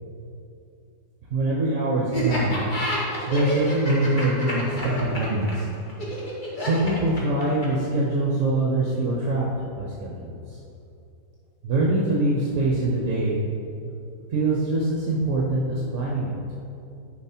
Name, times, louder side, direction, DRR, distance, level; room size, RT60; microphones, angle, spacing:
voice 1, 1.3-2.6 3.3-5.7 6.6-9.5 9.8-10.6 11.6-13.4 14.3-16.3, right 2 dB, 50° right, -4 dB, 1.3 m, -24 dB
Laughter, 2.1-7.9, equal, 30° left, 1.5 m, -29 dB
10.5 x 5.0 x 4.5 m, 2.7 s
omnidirectional pair, 1.8 m